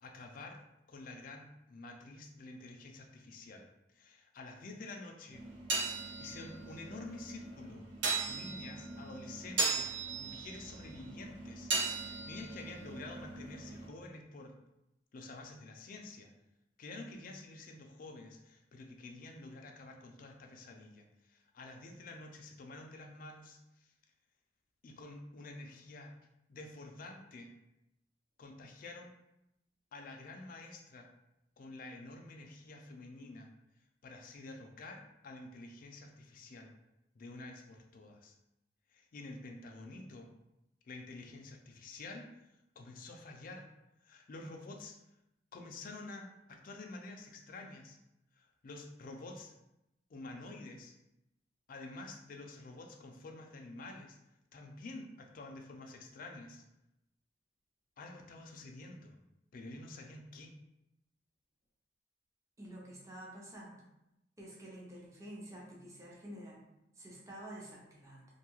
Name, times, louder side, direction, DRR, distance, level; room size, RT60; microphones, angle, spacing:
voice 1, 0.0-0.6 0.9-3.7 3.9-5.4 6.2-7.8 8.3-11.7 12.0-14.5 15.1-16.3 16.8-23.9 24.8-26.1 26.5-27.5 28.4-29.1 29.9-31.1 31.6-33.5 34.0-36.7 37.2-38.4 38.9-40.3 40.8-42.3 42.8-43.7 44.0-44.9 45.5-48.0 48.3-49.5 50.1-50.9 51.7-54.2 54.5-56.6 58.0-59.1 59.5-60.5, left 2 dB, 50° left, 3 dB, 0.4 m, -49 dB
sound 1, 5.3-13.9, right 3 dB, 80° right, 0.7 m, -38 dB
voice 2, 62.6-63.8 64.4-66.6 67.0-68.3, right 1 dB, 15° right, -4 dB, 0.6 m, -49 dB
2.6 x 2.3 x 3.0 m, 0.88 s
head